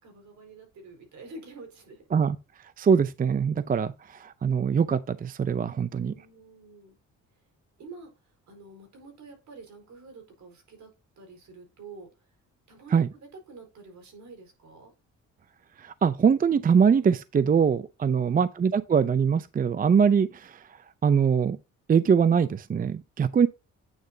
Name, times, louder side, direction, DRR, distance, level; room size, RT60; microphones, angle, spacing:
voice 1, 0.0-2.0 5.9-7.0 7.8-8.1 8.5-10.9 11.2-12.1 12.7-14.9 18.2-18.5, right 3 dB, 70° right, 4.4 m, -47 dB
voice 2, 2.8-6.1 12.9-13.1 15.8-20.7 21.0-21.6 21.9-23.5, right 6 dB, 30° right, 0.5 m, -23 dB
9.0 x 6.4 x 2.7 m
cardioid pair, 90°, 30 cm